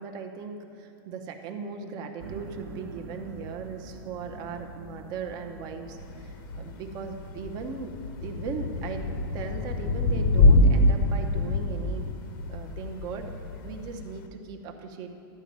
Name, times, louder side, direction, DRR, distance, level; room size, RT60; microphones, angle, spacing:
voice 1, 0.0-12.2 12.5-13.3 13.6-15.1, right 5 dB, 35° right, 4 dB, 0.8 m, -38 dB
sound 1, 2.2-14.0, right 1 dB, 85° right, 1.3 m, -47 dB
Thunder / Rain, 6.0-14.3, left 2 dB, 60° left, 0.8 m, -25 dB
12.0 x 5.1 x 8.7 m, 2.6 s
supercardioid pair, 160°, 12 cm